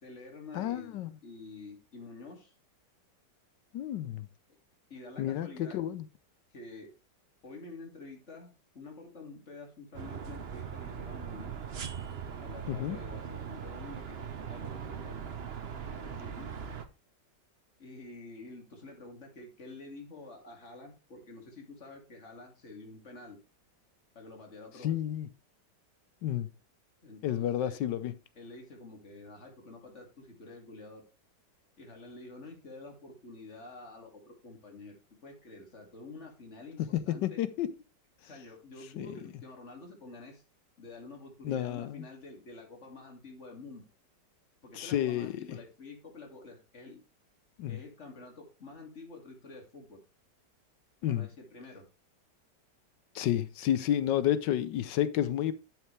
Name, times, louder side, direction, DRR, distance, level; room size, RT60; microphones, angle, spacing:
voice 1, 0.0-2.5 4.9-5.8 6.5-6.9 7.4-11.6 12.4-14.2 14.5-15.4 15.8-16.5 17.8-23.4 24.1-24.9 27.0-27.8 28.3-31.0 31.8-37.4 38.2-40.4 40.8-43.8 44.6-47.0 47.7-50.0 51.1-51.8, left 3 dB, 40° left, 2.6 m, -48 dB
voice 2, 0.5-1.1 3.7-4.3 5.2-5.5 5.7-6.0 12.7-13.0 24.8-25.3 26.2-26.5 27.2-28.1 36.9-37.7 39.0-39.1 41.4-41.9 44.8-45.6 47.6-47.8 51.0-51.3 53.1-55.5, left 11 dB, 80° left, 1.3 m, -30 dB
sound 1, 9.9-16.9, right 7 dB, 45° right, 0.9 m, -40 dB
10.5 x 6.6 x 3.3 m
omnidirectional pair, 1.9 m